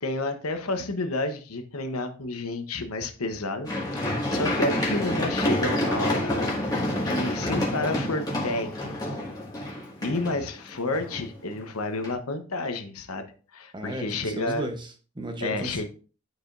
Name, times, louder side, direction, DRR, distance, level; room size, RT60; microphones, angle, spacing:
voice 1, 0.0-6.4 7.0-9.2 10.0-13.2 13.5-14.6 15.4-15.8, left 2 dB, 90° left, 7 dB, 1.1 m, -30 dB
Run, 3.6-11.5 12.0-12.1, left 1 dB, 20° left, 2.0 m, -28 dB
voice 2, 13.7-15.8, right 1 dB, 20° right, 5 dB, 1.0 m, -34 dB
11.5 x 5.0 x 2.6 m, 0.38 s
head